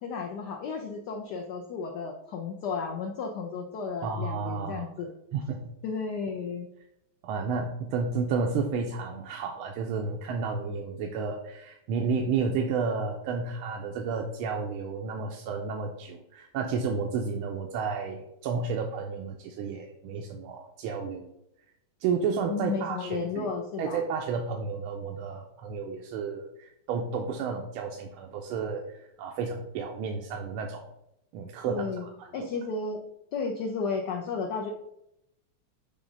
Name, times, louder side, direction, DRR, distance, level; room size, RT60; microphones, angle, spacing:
voice 1, 0.0-5.1 5.8-6.7 22.5-24.0 31.7-32.0 32.3-33.0 33.3-34.7, left 5 dB, 70° left, 3 dB, 1.1 m, -33 dB
voice 2, 4.0-4.9 5.3-5.6 7.2-21.3 22.0-23.5 23.8-30.9 31.3-32.5, right 5 dB, 85° right, 2 dB, 1.5 m, -32 dB
6.1 x 3.6 x 5.2 m, 0.81 s
omnidirectional pair, 2.3 m